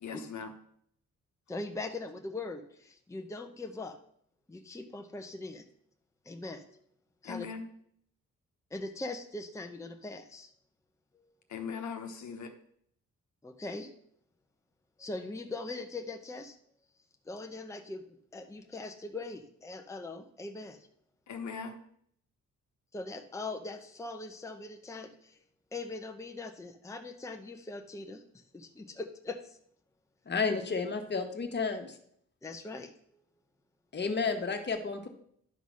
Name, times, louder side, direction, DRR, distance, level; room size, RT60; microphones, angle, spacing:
voice 1, 0.0-0.5 7.2-7.7 11.5-12.5 21.3-21.8, left 6 dB, 70° left, 1.1 m, -39 dB
voice 2, 1.5-4.0 4.5-5.6 6.2-6.8 7.2-7.5 8.7-10.5 13.4-13.9 15.0-16.6 17.3-18.0 18.3-20.9 22.9-25.4 25.7-29.6 32.4-33.2, left 2 dB, 10° left, 0.7 m, -41 dB
voice 3, 30.3-31.9 33.9-35.1, left 4 dB, 35° left, 1.3 m, -31 dB
11.0 x 4.0 x 6.2 m
cardioid pair, 110°, 30 cm